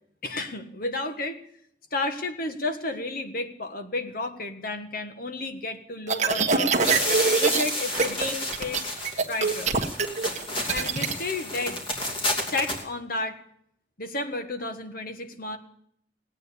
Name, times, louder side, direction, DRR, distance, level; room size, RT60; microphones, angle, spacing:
voice 1, 0.2-1.4 1.9-6.9 7.4-8.9 9.3-9.7 10.7-11.8 12.4-13.4 14.0-15.6, left 2 dB, 50° left, 8 dB, 1.5 m, -32 dB
sound 1, 6.1-7.6 7.9-8.3 8.5-11.1, right 4 dB, 40° right, 1.4 m, -24 dB
sound 2, 6.8-12.8, left 1 dB, 30° left, 2.7 m, -31 dB
17.5 x 9.0 x 8.5 m, 0.71 s
head